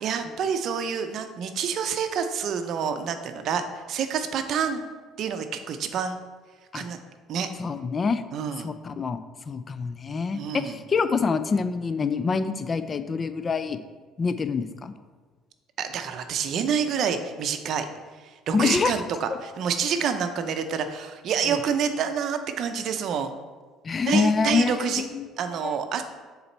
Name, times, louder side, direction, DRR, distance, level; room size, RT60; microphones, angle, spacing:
voice 1, 0.0-4.8 5.2-6.2 6.7-7.0 7.3-7.5 8.3-8.7 10.3-10.8 15.8-17.9 18.5-23.3 24.1-25.0 25.4-26.0, right 7 dB, 55° right, 8 dB, 0.6 m, -28 dB
voice 2, 7.6-8.2 8.6-9.2 9.5-13.8 14.2-14.9 18.5-18.9 21.5-21.6 23.8-25.3 25.6-25.7, left 5 dB, 25° left, 11 dB, 0.3 m, -26 dB
7.0 x 4.0 x 4.5 m, 1.4 s
cardioid pair, 135°, 0 cm